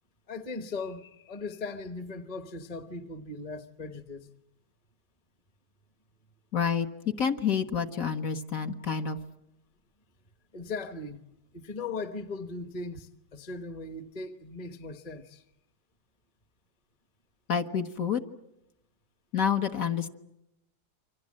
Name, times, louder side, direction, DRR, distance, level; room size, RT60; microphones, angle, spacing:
voice 1, 0.3-4.3 10.5-11.2 11.5-15.4, left 3 dB, 25° left, 1.1 m, -38 dB
voice 2, 6.5-6.9 7.2-9.2 17.5-18.2 19.3-20.1, left 7 dB, 55° left, 1.6 m, -28 dB
28.5 x 25.5 x 7.5 m
omnidirectional pair, 1.8 m